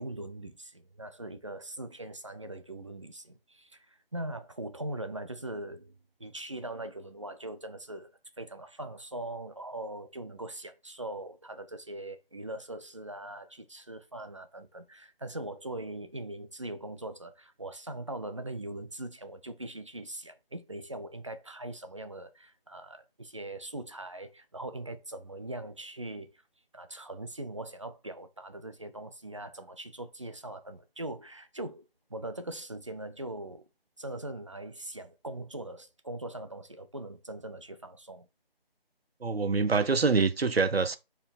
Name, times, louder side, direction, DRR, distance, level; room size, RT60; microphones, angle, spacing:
voice 1, 0.0-26.4 26.7-33.7 34.0-38.3, right 1 dB, 30° right, 0.5 m, -41 dB
voice 2, 39.2-41.0, right 4 dB, 90° right, 0.8 m, -25 dB
5.6 x 4.5 x 4.2 m
figure-of-eight pair, 165°, 30 cm